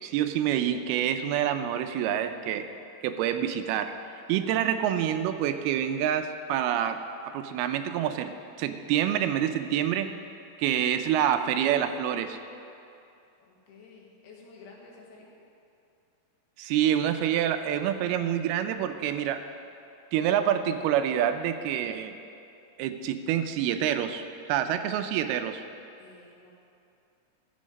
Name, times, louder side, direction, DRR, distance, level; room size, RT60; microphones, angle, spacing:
voice 1, 0.0-2.7 3.0-3.9 4.3-10.1 10.6-12.4 16.6-19.4 20.1-22.2 22.8-24.2 24.5-25.6, right 10 dB, 85° right, 8 dB, 2.5 m, -27 dB
voice 2, 13.5-15.3 26.0-26.5, left 4 dB, 90° left, -2 dB, 3.8 m, -51 dB
14.5 x 8.4 x 5.3 m, 2.6 s
omnidirectional pair, 4.5 m